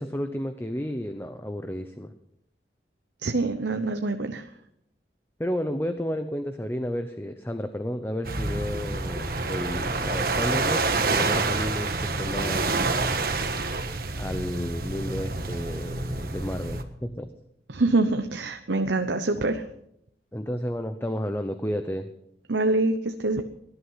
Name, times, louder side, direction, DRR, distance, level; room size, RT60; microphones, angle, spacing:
voice 1, 0.0-2.1 5.4-13.2 14.2-17.3 20.3-22.1, equal, 15° left, 8 dB, 0.8 m, -32 dB
voice 2, 3.2-4.4 17.7-19.6 22.5-23.4, right 2 dB, 85° right, 7 dB, 0.9 m, -25 dB
sound 1, 8.2-16.8, right 3 dB, 55° right, 1.4 m, -28 dB
18.5 x 11.5 x 5.7 m, 0.76 s
head